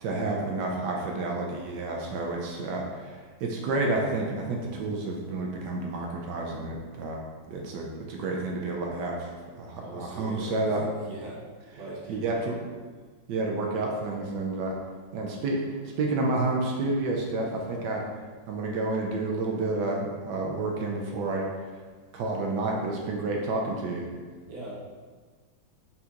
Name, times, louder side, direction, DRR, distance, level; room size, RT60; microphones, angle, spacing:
voice 1, 0.0-7.2 7.5-9.3 9.6-10.8 12.1-12.6 13.3-14.8 15.1-15.6 16.0-18.0 18.5-21.5 22.1-24.1, right 2 dB, 75° right, 0 dB, 1.1 m, -30 dB
voice 2, 9.7-11.4 11.7-12.4 24.5-24.7, right 1 dB, 55° right, -6 dB, 1.5 m, -41 dB
4.2 x 3.6 x 2.8 m, 1.5 s
omnidirectional pair, 2.0 m